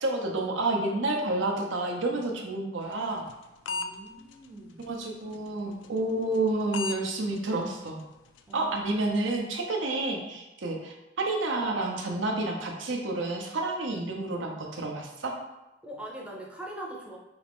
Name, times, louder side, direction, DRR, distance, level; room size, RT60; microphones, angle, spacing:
voice 1, 0.0-3.3 4.9-8.0 8.5-15.3, right 2 dB, 85° right, 1 dB, 0.7 m, -29 dB
sound 1, 2.9-3.9 4.3-4.5 4.8-5.0 5.3-5.5 5.8-6.0 6.3-6.5 6.7-7.0 7.4-7.5 7.9-8.0 8.4-8.5 8.9-9.1, left 4 dB, 75° left, 0.3 m, -34 dB
voice 2, 3.7-4.9 8.5-8.7 15.8-17.2, right 1 dB, 5° right, -2 dB, 0.5 m, -42 dB
4.2 x 2.5 x 3.4 m, 1.0 s
head